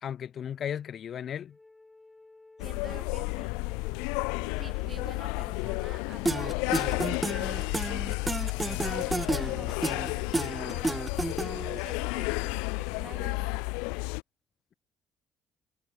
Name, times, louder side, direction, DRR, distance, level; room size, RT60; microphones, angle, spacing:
voice 1, 0.0-1.6, left 9 dB, 55° left, 2.7 m, -35 dB
Wind instrument woodwind instrument, 1.5-10.6, left 2 dB, 20° left, 3.6 m, -54 dB
sound 1, 2.6-14.2, left 33 dB, 85° left, 0.3 m, -32 dB
voice 2, 2.6-3.6 4.1-4.2 4.5-8.0 8.3-11.3 11.7-13.6, right 5 dB, 40° right, 3.6 m, -50 dB
sound 2, 6.3-11.8, right 2 dB, 15° right, 1.2 m, -31 dB
supercardioid pair, 70°, 0 cm